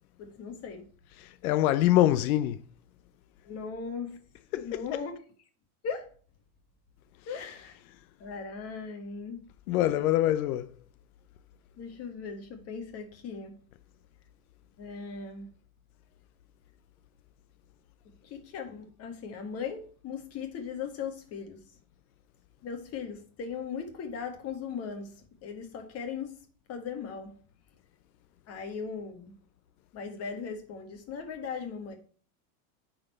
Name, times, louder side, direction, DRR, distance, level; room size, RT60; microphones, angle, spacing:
voice 1, 0.2-0.9 3.4-4.2 4.6-5.1 5.8-6.1 7.3-7.7 8.2-9.4 11.8-13.5 14.8-15.5 18.2-21.6 22.6-25.1 25.4-26.4 26.7-27.3 28.5-29.3 29.9-31.9, left 6 dB, 35° left, 1.8 m, -38 dB
voice 2, 1.2-2.6 4.5-5.0 9.7-10.7, left 13 dB, 90° left, 0.7 m, -25 dB
9.0 x 4.5 x 4.2 m
supercardioid pair, 155°, 42 cm